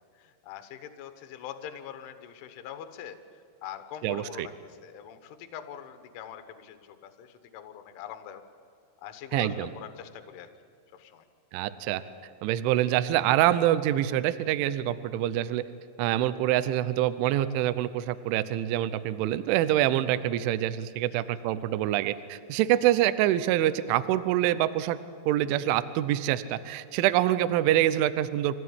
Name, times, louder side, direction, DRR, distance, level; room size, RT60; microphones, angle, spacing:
voice 1, 0.0-3.2 3.6-8.4 9.0-10.5 10.9-11.3 21.1-21.2, left 9 dB, 75° left, 9 dB, 3.6 m, -43 dB
voice 2, 4.0-4.5 9.3-9.7 11.5-12.0 12.4-15.6 16.0-25.0 25.3-28.6, right 13 dB, 80° right, 13 dB, 3.1 m, -25 dB
26.0 x 17.0 x 9.6 m, 2.2 s
omnidirectional pair, 5.9 m